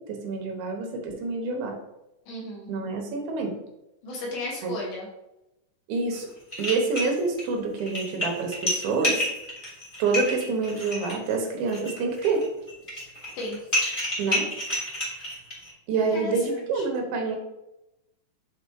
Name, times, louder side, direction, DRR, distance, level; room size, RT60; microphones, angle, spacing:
voice 1, 0.0-1.8 2.7-3.6 4.6-4.8 5.9-6.3 6.6-9.3 10.0-12.5 14.2-14.5 15.9-17.4, right 4 dB, 85° right, 2 dB, 2.8 m, -27 dB
voice 2, 2.3-2.7 4.0-5.1 13.4-13.6 16.1-16.8, left 2 dB, 65° left, -2 dB, 2.8 m, -34 dB
sound 1, 6.1-6.2 6.5-7.4 7.8-15.7, left 1 dB, 30° left, 1.0 m, -29 dB
8.8 x 4.0 x 3.1 m, 0.90 s
omnidirectional pair, 4.2 m